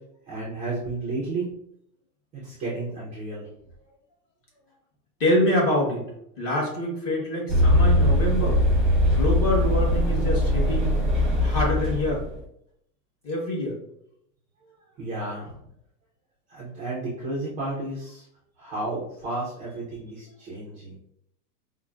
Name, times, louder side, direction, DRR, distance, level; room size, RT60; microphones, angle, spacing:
voice 1, 0.3-1.5 2.3-3.5 14.6-14.7 15.0-15.6 16.5-18.2 18.6-21.0, right 2 dB, 15° right, -7 dB, 0.5 m, -32 dB
voice 2, 5.2-6.0 6.4-8.6 9.1-11.0 11.4-12.2 13.2-13.7, left 1 dB, 25° left, -3 dB, 1.2 m, -25 dB
sound 1, 7.5-12.4, left 1 dB, ahead, 1.0 m, -21 dB
5.3 x 2.1 x 2.3 m, 0.74 s
supercardioid pair, 150°, 49 cm